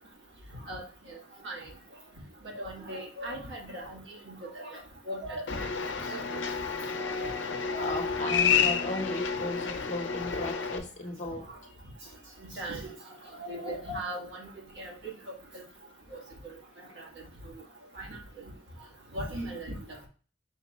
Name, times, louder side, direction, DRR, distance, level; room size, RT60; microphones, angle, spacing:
voice 1, 2.6-4.0 4.3-4.8 5.1-5.6 6.1-6.4 7.2-7.3 7.7-8.0 12.6-12.9 13.4-14.5 14.8-14.9 16.1-16.2 18.0-18.2 19.1-19.7, right 1 dB, 75° right, -2 dB, 1.5 m, -38 dB
sound 1, 5.5-10.8, left 6 dB, 90° left, 0.6 m, -30 dB
voice 2, 7.8-11.4, left 2 dB, 40° left, 2 dB, 0.8 m, -36 dB
5.7 x 2.2 x 4.0 m, 0.40 s
head